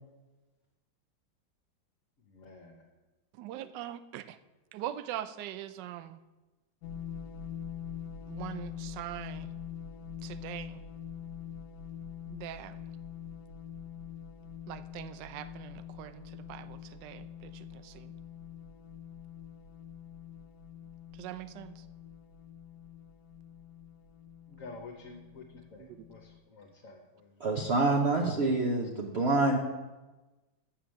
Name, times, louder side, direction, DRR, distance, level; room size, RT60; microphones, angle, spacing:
voice 1, 2.3-2.8 24.5-25.4 25.7-27.3, left 3 dB, 50° left, 1 dB, 1.4 m, -49 dB
voice 2, 3.4-4.4 4.7-6.2 8.3-9.5 10.2-10.8 12.3-12.7 14.7-18.1 21.2-21.7 25.8-26.0, right 12 dB, 75° right, 13 dB, 1.2 m, -42 dB
sound 1, 6.8-26.4, left 8 dB, 70° left, 1.2 m, -45 dB
voice 3, 27.4-29.6, right 2 dB, 45° right, 0 dB, 1.0 m, -27 dB
8.9 x 7.1 x 6.3 m, 1.1 s
omnidirectional pair, 2.0 m